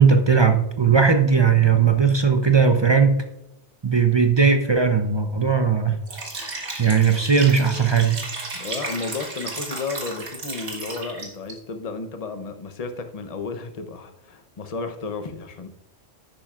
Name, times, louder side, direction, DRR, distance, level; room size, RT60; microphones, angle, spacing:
voice 1, 0.0-3.2 3.8-6.0 6.4-8.2, right 6 dB, 40° right, 6 dB, 0.3 m, -18 dB
Liquid, 6.0-11.5, right 2 dB, 60° right, 2.1 m, -34 dB
voice 2, 8.5-15.7, left 4 dB, 35° left, 7 dB, 0.7 m, -33 dB
10.5 x 8.7 x 2.4 m, 0.86 s
omnidirectional pair, 1.3 m